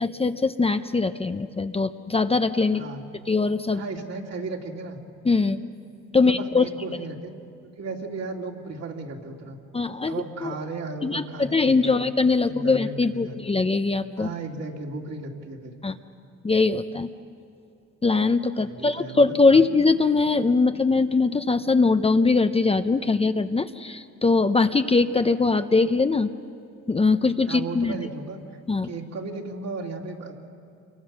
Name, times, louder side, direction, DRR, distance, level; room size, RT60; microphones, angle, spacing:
voice 1, 0.0-2.8 3.3-3.8 5.2-5.6 6.1-6.7 9.7-10.1 10.4-10.5 11.0-14.3 15.8-16.0 16.4-17.1 18.0-26.3 26.9-27.9 28.7-28.9, left 3 dB, 20° left, 9 dB, 0.7 m, -21 dB
voice 2, 3.7-5.0 6.2-7.3 7.8-9.6 10.1-12.1 12.5-13.4 14.2-15.7 18.6-19.8 27.5-28.4 28.8-30.3, right 3 dB, 60° right, 1 dB, 2.8 m, -35 dB
28.0 x 23.5 x 6.3 m, 2.5 s
cardioid pair, 90°, 30 cm